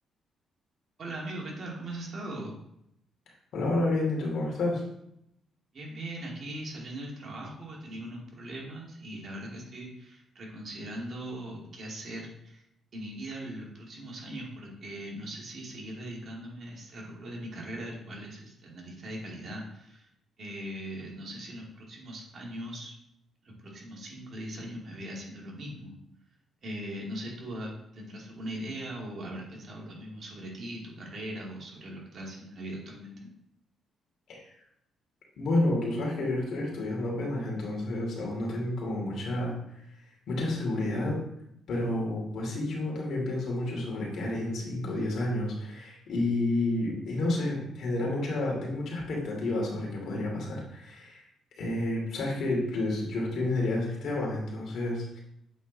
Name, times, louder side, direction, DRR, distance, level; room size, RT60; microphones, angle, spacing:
voice 1, 1.0-2.6 5.7-12.6 12.9-20.1 20.4-22.9 23.4-26.0 26.6-33.3, right 1 dB, 50° right, -2 dB, 2.3 m, -40 dB
voice 2, 3.5-4.8 34.3-34.4 35.4-39.5 40.3-41.2 41.7-51.2 51.6-55.2, left 2 dB, 70° left, -2 dB, 2.6 m, -30 dB
8.3 x 4.3 x 4.0 m, 0.79 s
cardioid pair, 90°, 0 cm